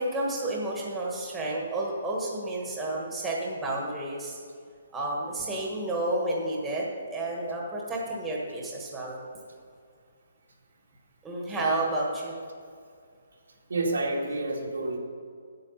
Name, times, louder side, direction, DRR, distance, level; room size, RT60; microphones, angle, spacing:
voice 1, 0.0-4.4 4.9-9.2 11.2-12.3, right 2 dB, 5° right, -3 dB, 1.4 m, -31 dB
voice 2, 13.7-15.0, right 2 dB, 90° right, -1 dB, 2.2 m, -29 dB
8.7 x 8.2 x 5.6 m, 2.2 s
hypercardioid pair, 170°, 0 cm